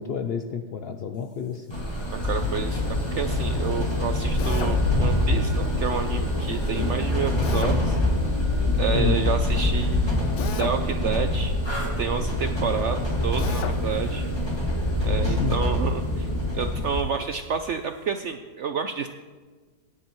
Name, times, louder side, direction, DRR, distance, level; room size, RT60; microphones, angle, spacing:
voice 1, 0.0-1.8 6.7-6.9 8.9-9.3 15.2-15.6, left 7 dB, 80° left, 6 dB, 0.5 m, -30 dB
sound 1, 1.7-17.0, left 1 dB, 15° left, 1.9 m, -25 dB
voice 2, 2.1-2.8 3.1-8.0 8.8-10.3 10.5-11.5 12.0-14.2 15.0-19.1, right 6 dB, 70° right, 7 dB, 0.7 m, -30 dB
Drill, 4.4-4.8 7.4-7.8 10.4-10.8 13.4-13.8, left 6 dB, 60° left, 0.9 m, -33 dB
18.5 x 10.0 x 3.1 m, 1.4 s
omnidirectional pair, 1.7 m